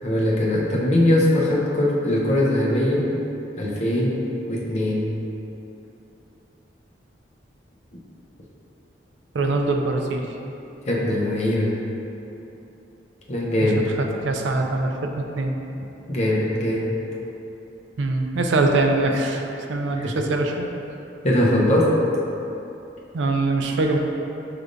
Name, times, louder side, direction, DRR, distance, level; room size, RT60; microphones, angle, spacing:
voice 1, 0.0-3.1 3.6-4.2 4.5-5.1 10.8-11.8 13.3-13.9 16.1-16.9 19.9-20.1 21.2-22.0, left 1 dB, 35° left, -5 dB, 0.7 m, -21 dB
voice 2, 9.3-10.3 13.8-15.6 18.0-20.7 23.1-24.0, right 2 dB, 85° right, 3 dB, 0.4 m, -23 dB
6.3 x 3.3 x 2.5 m, 2.9 s
head